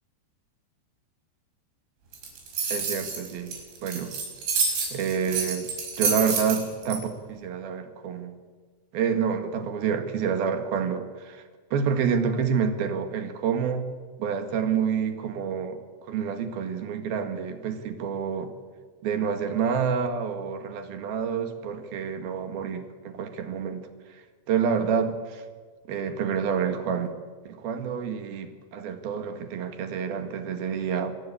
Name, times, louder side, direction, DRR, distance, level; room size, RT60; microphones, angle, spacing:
sound 1, 2.1-7.0, right 5 dB, 85° right, 8.0 m, -28 dB
voice 1, 2.7-4.2 4.9-5.6 6.0-8.4 8.9-11.4 11.7-13.9 14.2-15.8 16.1-18.5 19.0-23.9 24.5-25.4 25.9-27.2 27.4-31.1, right 7 dB, 60° right, 8 dB, 3.3 m, -28 dB
26.0 x 21.0 x 8.6 m, 1.5 s
omnidirectional pair, 5.4 m